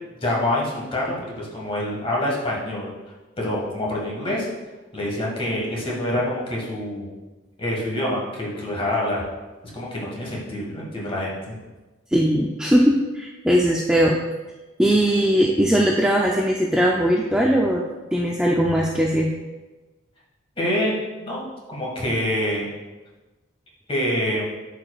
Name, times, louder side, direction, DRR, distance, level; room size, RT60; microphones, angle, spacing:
voice 1, 0.2-2.9 3.4-4.5 4.9-7.2 7.6-9.2 9.7-11.5 20.6-21.0 21.2-21.4 21.7-22.7 23.9-24.4, left 1 dB, 25° left, -4 dB, 1.6 m, -26 dB
voice 2, 12.1-14.2 14.8-17.8 18.1-19.3, equal, 5° right, -1 dB, 0.3 m, -19 dB
10.5 x 4.9 x 2.4 m, 1.2 s
head